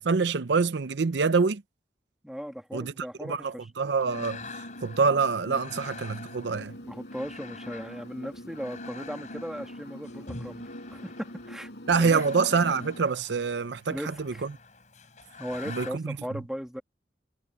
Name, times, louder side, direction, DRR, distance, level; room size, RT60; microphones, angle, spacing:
voice 1, 0.0-1.6 2.7-2.9 3.2-4.4 4.8-6.7 11.9-14.3 15.7-16.2, right 5 dB, 80° right, 0.6 m, -26 dB
voice 2, 2.2-3.7 6.8-11.7 12.0-12.2 13.9-14.5 15.4-16.8, equal, 5° right, 2.1 m, -37 dB
sound 1, 4.0-13.0, equal, 75° left, 7.9 m, -44 dB
sound 2, 4.0-15.9, left 4 dB, 40° left, 4.5 m, -46 dB
head